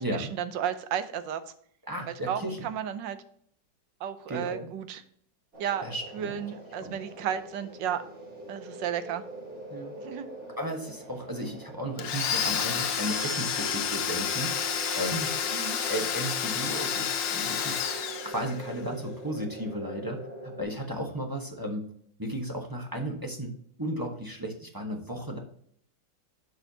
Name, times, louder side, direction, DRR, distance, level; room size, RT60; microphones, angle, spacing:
voice 1, 0.0-1.4 2.3-3.2 4.0-5.0 5.6-5.9 6.1-8.0 8.5-9.2 10.0-10.3 15.5-15.8, right 9 dB, 80° right, 11 dB, 1.4 m, -33 dB
voice 2, 1.9-2.6 4.3-4.7 5.8-6.4 6.8-7.0 9.7-9.9 10.6-14.5 14.9-15.3 15.9-17.8 18.2-21.8 22.2-25.4, right 1 dB, 15° right, 1 dB, 0.8 m, -34 dB
sound 1, 5.5-20.6, right 1 dB, 40° right, 2.8 m, -43 dB
Domestic sounds home sounds, 12.0-18.8, left 7 dB, 85° left, 1.6 m, -30 dB
11.0 x 5.4 x 2.8 m, 0.64 s
omnidirectional pair, 1.9 m